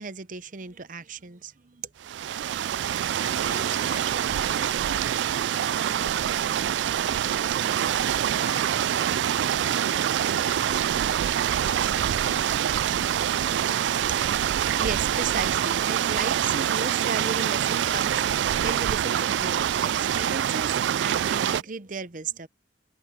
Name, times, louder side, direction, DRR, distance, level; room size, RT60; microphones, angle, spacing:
voice 1, 0.0-1.9 14.3-22.5, right 5 dB, 45° right, 0.8 m, -35 dB
sound 1, 2.0-21.6, right 10 dB, 75° right, 0.3 m, -25 dB
voice 2, 3.2-5.6 5.9-6.7 7.2-8.0 8.3-9.0 9.5-11.3 11.6-13.6, left 2 dB, 65° left, 1.3 m, -47 dB
head